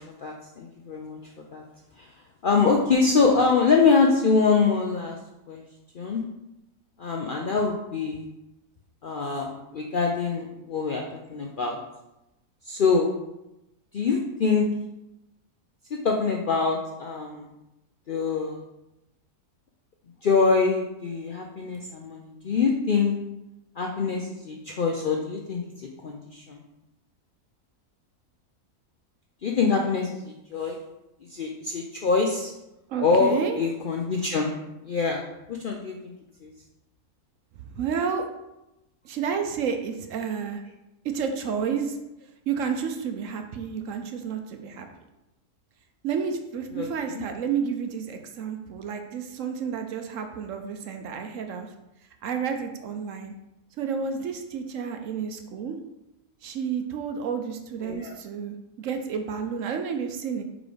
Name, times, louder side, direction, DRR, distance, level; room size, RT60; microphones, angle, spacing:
voice 1, 0.0-1.6 2.0-2.1 2.4-5.2 5.5-5.6 5.9-6.2 7.0-8.3 9.0-11.8 12.6-13.1 13.9-14.7 15.9-17.5 18.1-18.6 20.2-23.2 23.8-26.6 29.4-30.8 31.2-32.5 33.0-34.6 34.8-35.2 35.5-36.1 36.4-36.5 46.7-47.2 57.8-58.2, left 4 dB, 80° left, 0 dB, 0.4 m, -24 dB
voice 2, 32.9-33.6 37.5-38.3 39.0-40.6 41.1-42.0 42.5-44.9 46.0-51.7 52.2-53.3 53.8-55.8 56.4-60.4, right 6 dB, 65° right, 5 dB, 0.9 m, -30 dB
4.7 x 4.0 x 5.1 m, 0.92 s
omnidirectional pair, 1.6 m